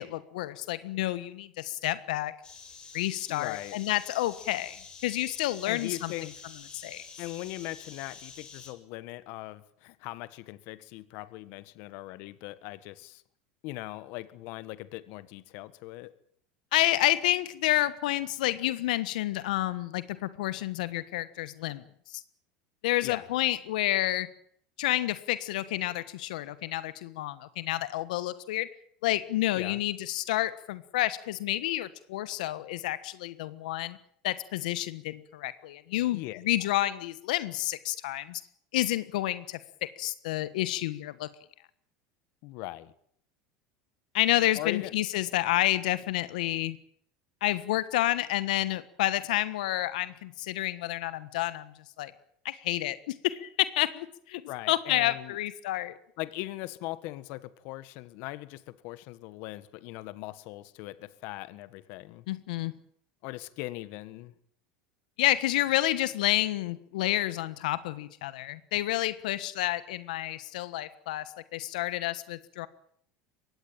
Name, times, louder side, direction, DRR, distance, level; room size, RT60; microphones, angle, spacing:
voice 1, 0.0-2.3 2.9-6.1 6.7-7.0 16.7-21.8 22.1-22.2 22.8-24.3 24.8-28.7 29.0-34.0 34.2-38.4 38.7-39.6 40.0-41.3 44.1-46.8 47.4-51.7 52.0-52.1 52.4-54.4 54.7-55.9 62.3-62.7 65.2-72.7, left 15 dB, 85° left, 14 dB, 1.4 m, -29 dB
sound 1, 2.4-8.7, left 5 dB, 20° left, 6.9 m, -48 dB
voice 2, 3.3-3.8 5.7-6.3 7.2-13.2 13.6-16.1 23.0-23.3 29.6-29.8 36.1-36.4 42.4-42.9 44.6-44.9 54.5-55.4 56.2-62.2 63.2-64.3, left 18 dB, 55° left, 15 dB, 1.6 m, -40 dB
23.0 x 18.0 x 8.9 m, 0.66 s
supercardioid pair, 145°, 4 cm